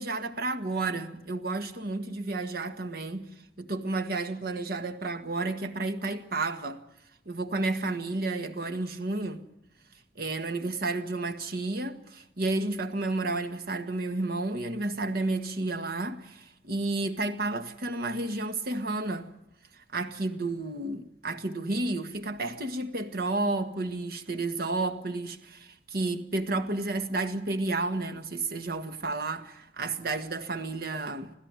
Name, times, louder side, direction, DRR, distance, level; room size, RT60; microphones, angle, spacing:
voice 1, 0.0-3.3 3.6-6.8 7.2-9.4 10.1-19.3 19.9-31.3, right 2 dB, 55° right, 1.7 m, -31 dB
26.5 x 15.5 x 9.7 m
head